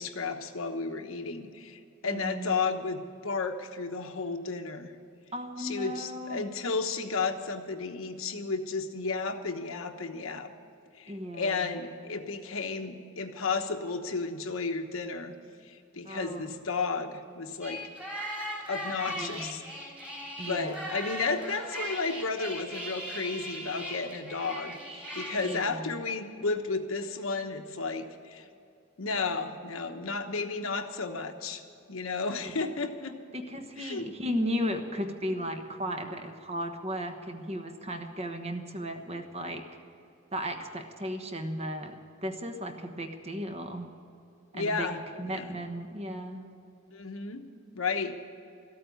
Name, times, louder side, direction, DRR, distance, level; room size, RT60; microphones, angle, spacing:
voice 1, 0.0-5.0 5.6-10.5 10.9-15.3 15.6-17.8 18.7-19.6 20.4-28.4 29.0-31.6 31.9-33.2 33.8-34.1 44.5-45.5 46.9-47.4 47.7-48.1, left 4 dB, 90° left, 5 dB, 1.1 m, -33 dB
voice 2, 2.0-2.6 5.3-6.4 11.1-11.8 16.0-16.5 19.1-19.6 20.4-20.9 25.4-26.0 32.4-32.5 33.3-39.6 40.3-41.9 42.2-43.9 44.5-46.4, equal, 30° right, 5 dB, 1.2 m, -35 dB
sound 1, 17.6-25.6, equal, 5° right, 2.2 m, -38 dB
14.0 x 8.7 x 9.5 m, 2.6 s
head